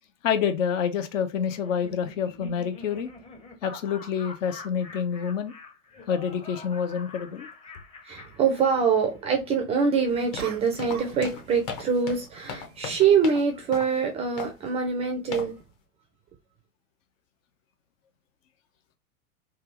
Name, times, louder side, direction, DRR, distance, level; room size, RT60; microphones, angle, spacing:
voice 1, 0.2-3.1 3.6-5.5 6.1-7.5, left 7 dB, 65° left, 0.8 m, -27 dB
Laughter, 1.6-9.1, left 3 dB, 15° left, 0.6 m, -46 dB
sound 1, 6.4-6.5 10.4-11.3 11.5-11.9, right 7 dB, 85° right, 0.6 m, -41 dB
voice 2, 8.0-15.6, right 6 dB, 15° right, 0.4 m, -24 dB
sound 2, 10.1-13.5 13.7-14.0 14.4-14.7 15.3-15.6, left 6 dB, 45° left, 1.0 m, -38 dB
3.4 x 2.3 x 2.9 m
hypercardioid pair, 105°, 41 cm